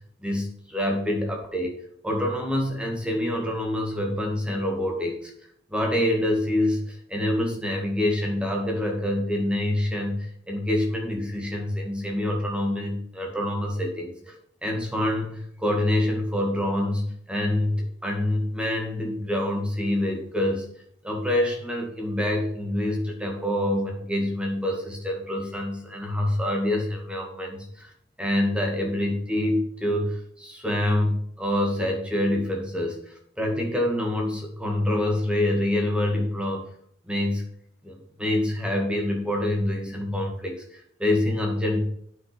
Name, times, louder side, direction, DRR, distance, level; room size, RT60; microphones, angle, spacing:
voice 1, 0.2-5.3 5.7-14.3 14.6-20.7 21.0-27.9 28.2-36.7 37.1-37.4 37.8-41.8, left 1 dB, 5° right, 1 dB, 1.9 m, -26 dB
9.0 x 7.0 x 5.1 m, 0.65 s
head